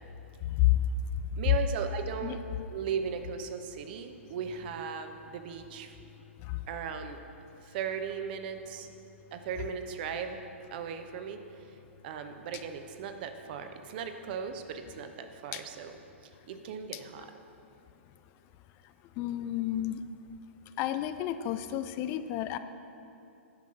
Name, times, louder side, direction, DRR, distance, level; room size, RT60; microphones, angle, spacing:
voice 1, 0.4-0.9 2.2-2.4 6.4-6.6 15.5-15.6 16.9-17.0 19.2-20.0 20.8-22.6, left 14 dB, 30° left, 11 dB, 0.4 m, -30 dB
voice 2, 1.4-5.9 6.7-7.2 7.6-8.9 9.3-10.4 10.7-11.4 11.7-11.8 12.0-17.3, right 7 dB, 45° right, 7 dB, 0.8 m, -37 dB
9.7 x 6.1 x 5.6 m, 2.7 s
figure-of-eight pair, 115°, 7 cm